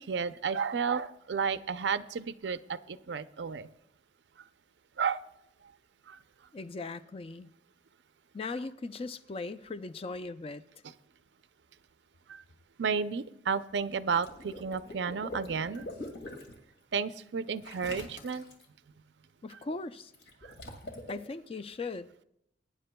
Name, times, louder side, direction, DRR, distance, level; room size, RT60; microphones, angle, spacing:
voice 1, 0.1-3.7 5.0-5.2 6.1-6.2 12.3-12.4 12.8-15.9 16.9-18.4 20.4-20.5, right 6 dB, 85° right, 13 dB, 0.5 m, -32 dB
voice 2, 6.5-7.5 8.3-10.6 19.4-20.1 21.1-22.1, left 3 dB, 35° left, 11 dB, 0.4 m, -38 dB
Water / Liquid, 14.1-16.5 17.6-18.6 20.1-21.1, left 1 dB, 80° left, 2.2 m, -43 dB
21.5 x 9.9 x 2.2 m, 0.78 s
head